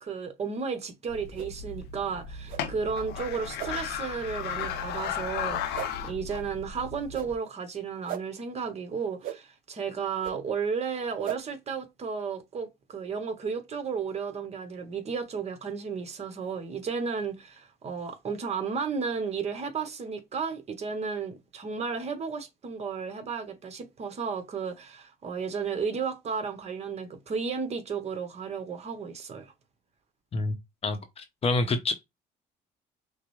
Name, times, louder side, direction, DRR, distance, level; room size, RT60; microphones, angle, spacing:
voice 1, 0.0-29.5, right 5 dB, 40° right, 1.0 m, -33 dB
sound 1, 1.1-7.3, left 7 dB, 75° left, 0.7 m, -35 dB
sound 2, 1.3-1.5 2.5-2.6 3.6-3.7 4.6-4.7 5.7-5.9 7.1-7.3 8.1-8.2 9.2-9.4 10.2-10.3 11.2-11.4, right 12 dB, 55° right, 0.4 m, -36 dB
voice 2, 30.8-31.9, left 3 dB, 35° left, 0.8 m, -27 dB
5.7 x 2.0 x 3.1 m
cardioid pair, 110°, 17 cm